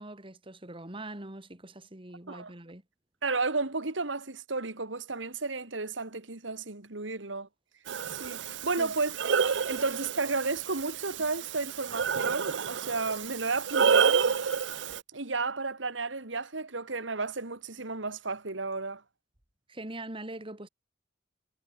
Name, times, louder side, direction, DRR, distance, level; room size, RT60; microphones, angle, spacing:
voice 1, 0.0-2.8 8.8-8.9 19.7-20.7, right 1 dB, 30° right, 2.5 m, -42 dB
voice 2, 3.2-7.5 8.1-9.2 9.7-14.4 15.1-19.0, right 3 dB, 90° right, 2.3 m, -33 dB
Breathing, 7.9-15.0, right 6 dB, 70° right, 0.6 m, -29 dB
head